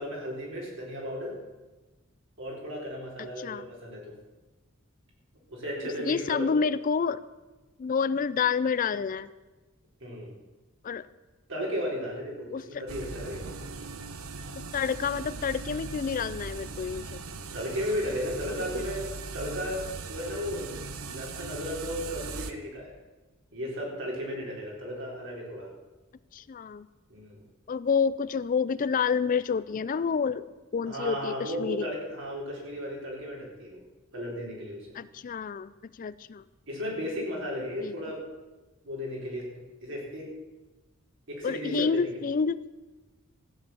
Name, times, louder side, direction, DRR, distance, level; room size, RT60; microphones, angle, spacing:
voice 1, 0.0-1.4 2.4-4.1 5.5-6.5 10.0-10.4 11.5-13.5 17.5-19.1 19.3-20.8 21.1-22.9 23.5-25.7 27.1-27.4 30.9-33.8 34.1-35.0 36.7-38.2 38.8-39.5 39.8-40.3 41.3-42.1, equal, 60° right, -2 dB, 4.1 m, -35 dB
voice 2, 3.2-3.7 6.0-7.2 7.8-9.3 10.8-11.1 12.5-12.8 14.6-17.2 18.7-18.9 26.3-26.9 27.7-31.9 34.9-35.7 36.0-36.4 37.8-38.0 41.4-42.7, left 6 dB, 40° left, 17 dB, 0.4 m, -29 dB
sound 1, 12.9-22.5, right 4 dB, 90° right, 0.9 m, -39 dB
14.5 x 8.6 x 7.1 m, 1.2 s
head